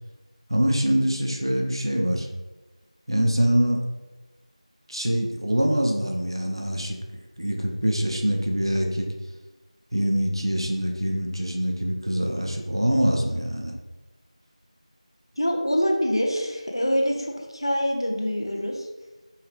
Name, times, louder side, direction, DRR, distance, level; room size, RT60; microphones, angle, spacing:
voice 1, 0.5-2.3 3.1-3.8 4.9-9.1 9.9-13.7, equal, 40° right, 1 dB, 0.5 m, -24 dB
voice 2, 15.4-18.9, equal, 45° left, 1 dB, 0.6 m, -25 dB
4.6 x 3.1 x 3.2 m, 1.1 s
figure-of-eight pair, 175°, 4 cm